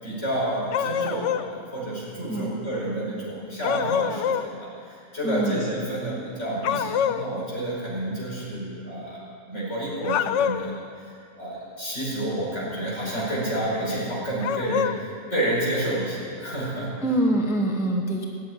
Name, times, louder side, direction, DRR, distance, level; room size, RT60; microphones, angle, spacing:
voice 1, 0.0-11.0 11.4-16.9, right 1 dB, 50° left, -6 dB, 5.1 m, -29 dB
Dog Barking, 0.7-1.5 3.6-4.5 6.6-7.3 10.0-10.8 14.4-15.0, left 9 dB, 65° left, 0.8 m, -25 dB
voice 2, 5.2-5.6 17.0-18.2, right 1 dB, ahead, 0 dB, 0.9 m, -24 dB
18.0 x 7.5 x 9.4 m, 2.5 s
omnidirectional pair, 1.5 m